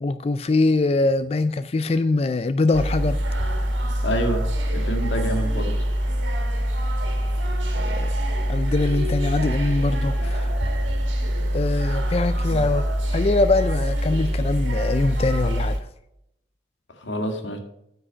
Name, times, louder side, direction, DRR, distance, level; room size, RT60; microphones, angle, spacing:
voice 1, 0.0-3.2 7.8-8.1 8.5-10.5 11.5-15.8, left 3 dB, 30° left, 0.3 m, -23 dB
sound 1, 2.7-15.8, equal, 85° right, 2.2 m, -24 dB
voice 2, 4.0-4.4 4.7-5.7 7.7-8.1 12.5-12.7 17.0-17.6, equal, 80° left, 1.8 m, -28 dB
9.3 x 6.3 x 6.2 m
head